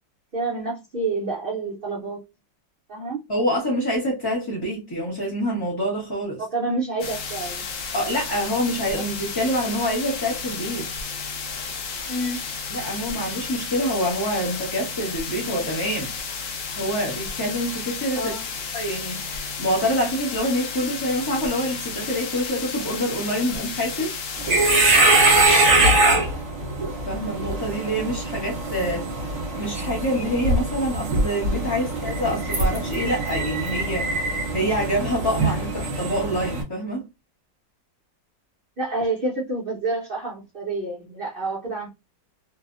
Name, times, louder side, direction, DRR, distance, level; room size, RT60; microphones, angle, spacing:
voice 1, 0.3-2.2 2.9-3.2 6.4-7.6 12.1-12.4 18.1-18.4 38.8-41.9, right 2 dB, 65° right, 0.5 m, -28 dB
voice 2, 3.3-6.4 7.9-10.9 12.7-16.1 16.8-18.3 18.7-24.1 27.1-29.1 29.5-37.0, equal, 25° left, 0.6 m, -26 dB
sound 1, 7.0-25.5, left 5 dB, 70° left, 0.7 m, -32 dB
sound 2, 24.4-36.6, right 2 dB, 45° right, 1.1 m, -22 dB
3.1 x 2.0 x 2.4 m
omnidirectional pair, 2.0 m